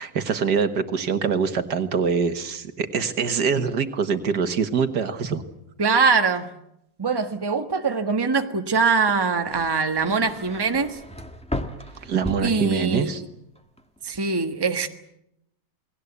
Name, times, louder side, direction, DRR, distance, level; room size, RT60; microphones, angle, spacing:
voice 1, 0.0-5.4 12.0-13.2, right 6 dB, 65° right, 9 dB, 2.0 m, -24 dB
voice 2, 5.8-6.5 7.0-11.0 12.4-13.1 14.0-14.9, right 4 dB, 15° right, 6 dB, 1.3 m, -22 dB
sound 1, 9.0-13.2 13.6-14.1, left 1 dB, 5° left, 1.6 m, -36 dB
28.5 x 19.5 x 8.2 m, 0.81 s
omnidirectional pair, 1.9 m